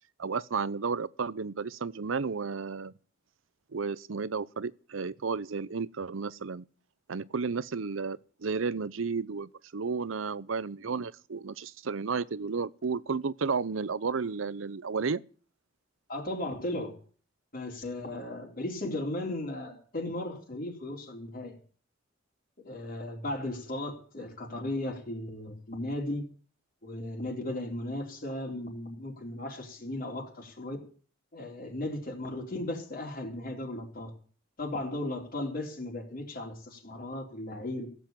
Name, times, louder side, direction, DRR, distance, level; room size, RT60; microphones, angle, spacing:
voice 1, 0.2-2.9 3.7-6.6 7.1-15.2, right 5 dB, 90° right, 0.7 m, -32 dB
voice 2, 16.1-17.0 17.5-21.5 22.6-26.2 26.8-30.8 31.3-34.1 34.6-37.9, left 1 dB, 50° left, 3.8 m, -36 dB
16.0 x 8.3 x 9.1 m
head